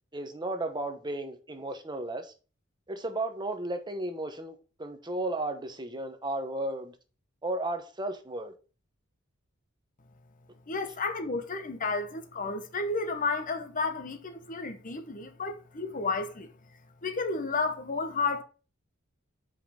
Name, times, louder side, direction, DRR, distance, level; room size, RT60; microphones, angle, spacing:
voice 1, 0.1-2.3 2.9-6.9 7.4-8.5, right 2 dB, 20° right, 1.0 m, -34 dB
voice 2, 10.7-16.5 17.0-18.4, left 3 dB, 40° left, 1.0 m, -32 dB
5.7 x 5.3 x 5.5 m
head